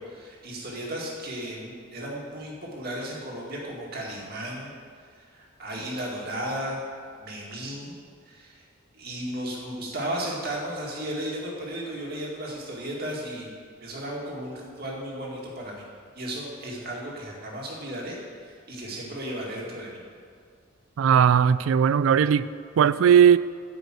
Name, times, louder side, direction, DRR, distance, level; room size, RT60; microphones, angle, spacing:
voice 1, 0.0-4.7 5.2-6.8 7.2-7.9 8.2-8.7 8.9-13.5 13.8-15.8 16.1-20.0, right 1 dB, 50° right, -3 dB, 2.1 m, -35 dB
voice 2, 21.0-22.5 22.8-23.4, right 8 dB, 80° right, 16 dB, 0.3 m, -18 dB
9.4 x 5.3 x 7.5 m, 2.1 s
head